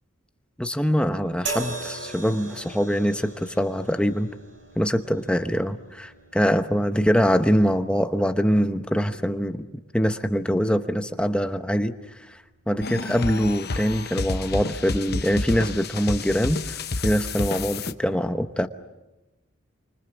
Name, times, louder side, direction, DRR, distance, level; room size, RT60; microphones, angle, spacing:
voice 1, 0.6-4.3 4.8-9.6 9.9-11.9 12.3-12.4 12.7-18.7, equal, 5° left, 7 dB, 1.0 m, -23 dB
sound 1, 1.5-14.8 15.7-15.9, right 3 dB, 60° right, 5.2 m, -41 dB
sound 2, 12.8-17.9, left 3 dB, 50° left, 1.0 m, -30 dB
29.0 x 25.5 x 7.2 m, 1.0 s
head